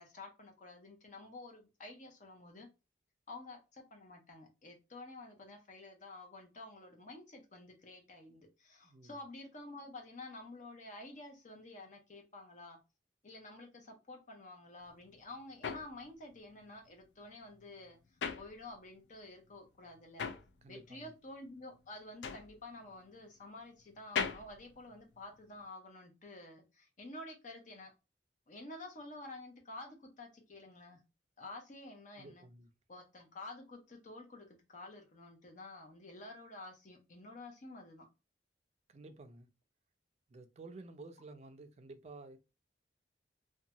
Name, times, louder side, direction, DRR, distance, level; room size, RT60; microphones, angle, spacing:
voice 1, 0.0-2.7 3.3-12.8 13.2-18.0 18.4-20.3 20.7-27.9 28.5-31.0 31.4-32.5 32.9-38.1, left 2 dB, 45° left, 0.8 m, -50 dB
voice 2, 8.8-9.2 20.6-21.1 32.2-32.7 38.9-39.5 40.3-42.4, right 2 dB, 40° right, 0.4 m, -52 dB
sound 1, 14.9-19.2 19.4-25.7, left 6 dB, 90° left, 0.4 m, -42 dB
2.7 x 2.2 x 2.7 m
head